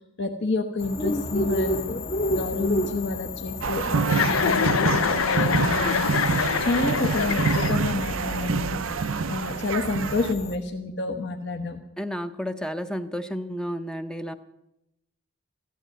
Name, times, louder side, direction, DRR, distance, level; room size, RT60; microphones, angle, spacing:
voice 1, 0.2-2.0 2.3-6.2 6.6-8.8 9.3-11.8, left 3 dB, 55° left, 3 dB, 1.0 m, -29 dB
sound 1, 0.8-10.6, left 1 dB, 30° left, 0.8 m, -32 dB
sound 2, 3.6-10.3, right 5 dB, 80° right, 0.5 m, -27 dB
Chuckle chortle, 4.1-8.1, left 7 dB, 80° left, 0.5 m, -25 dB
voice 2, 12.0-14.3, equal, 5° left, 9 dB, 0.6 m, -31 dB
14.5 x 12.0 x 7.8 m, 0.88 s
head